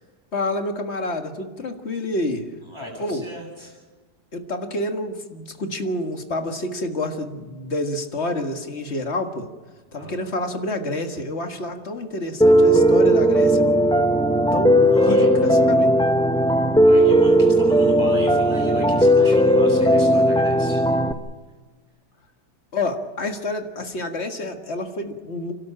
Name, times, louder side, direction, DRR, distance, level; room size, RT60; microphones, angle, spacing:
voice 1, 0.3-2.5 3.0-3.3 4.3-9.5 9.9-13.7 14.5-15.9 22.7-25.5, left 2 dB, 40° left, 6 dB, 2.0 m, -28 dB
voice 2, 2.7-3.7 9.9-10.1 14.9-15.3 16.8-20.8, equal, 15° right, -1 dB, 7.9 m, -35 dB
Piano, 12.4-21.1, equal, 5° left, 0.4 m, -16 dB
29.5 x 12.5 x 8.8 m, 1.3 s
omnidirectional pair, 1.8 m